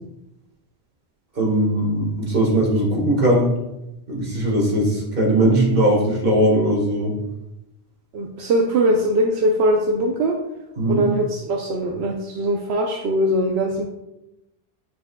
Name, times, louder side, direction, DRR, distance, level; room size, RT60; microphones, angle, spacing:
voice 1, 1.4-3.5 4.1-7.1 10.8-11.0, right 1 dB, 60° right, -3 dB, 1.8 m, -19 dB
voice 2, 8.1-10.4 10.9-13.8, right 1 dB, 85° right, 1 dB, 0.9 m, -21 dB
9.1 x 4.7 x 2.2 m, 0.91 s
omnidirectional pair, 1.1 m